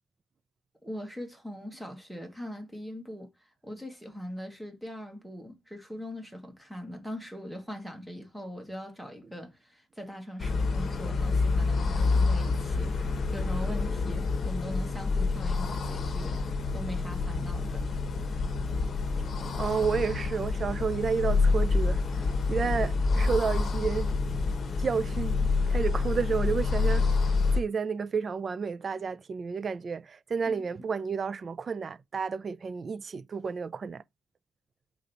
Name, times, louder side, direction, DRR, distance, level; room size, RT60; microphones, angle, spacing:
voice 1, 0.8-16.4 16.7-17.8 30.4-30.9, equal, 5° right, 1.3 m, -41 dB
sound 1, 10.4-27.6, left 4 dB, 40° left, 1.0 m, -27 dB
voice 2, 19.6-24.1 24.8-25.4 25.7-27.1 27.5-34.0, right 5 dB, 35° right, 0.3 m, -31 dB
5.1 x 4.5 x 4.1 m
wide cardioid pair, 180°, 0 cm